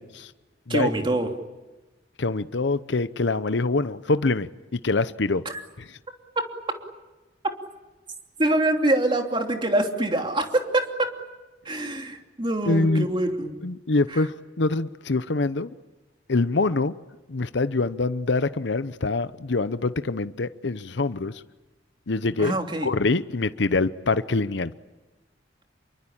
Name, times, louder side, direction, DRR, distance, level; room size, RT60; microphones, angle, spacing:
voice 1, 0.7-1.3 5.4-5.5 6.4-6.5 8.4-11.1 11.6-13.6 14.1-14.2 22.4-22.9, right 1 dB, 25° right, 3.0 m, -24 dB
voice 2, 2.2-5.4 5.8-5.9 12.7-13.1 13.6-15.7 16.3-16.9 17.3-21.3 22.1-22.6 22.8-24.7, left 3 dB, 70° left, 0.8 m, -24 dB
27.5 x 23.5 x 8.8 m
head